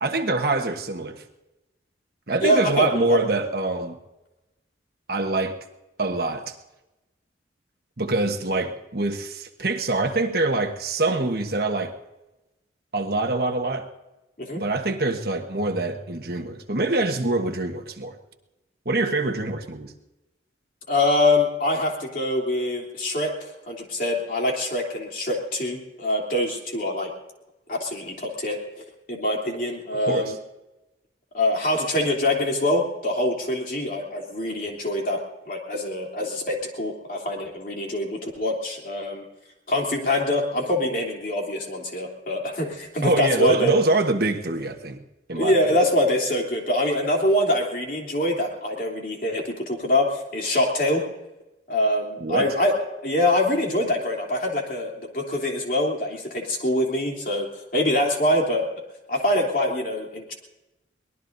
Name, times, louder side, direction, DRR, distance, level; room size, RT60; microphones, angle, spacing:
voice 1, 0.0-1.2 2.3-4.0 5.1-5.6 6.0-6.5 8.0-11.9 12.9-13.9 14.6-18.1 18.8-19.9 30.1-30.3 43.0-45.0 45.3-45.6 52.2-52.5, right 2 dB, 55° right, 5 dB, 1.3 m, -24 dB
voice 2, 2.4-3.2 14.4-14.6 20.9-27.1 27.7-28.6 29.1-30.4 31.3-35.2 35.5-39.2 39.7-43.7 45.3-51.0 51.7-52.7 53.0-58.7 59.1-60.3, left 1 dB, 45° left, 0 dB, 3.2 m, -24 dB
23.5 x 19.5 x 2.7 m, 1.0 s
head